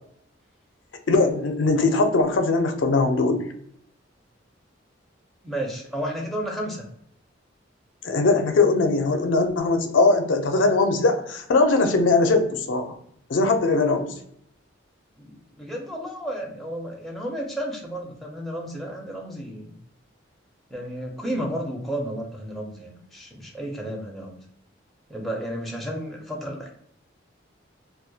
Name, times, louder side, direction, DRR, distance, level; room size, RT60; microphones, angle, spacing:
voice 1, 1.1-3.4 8.0-12.9 13.3-14.1, left 3 dB, 70° left, 5 dB, 0.4 m, -20 dB
voice 2, 5.4-6.8 15.2-19.8 20.7-24.4 25.1-26.7, right 1 dB, ahead, -2 dB, 0.4 m, -32 dB
2.2 x 2.1 x 2.6 m, 0.69 s
head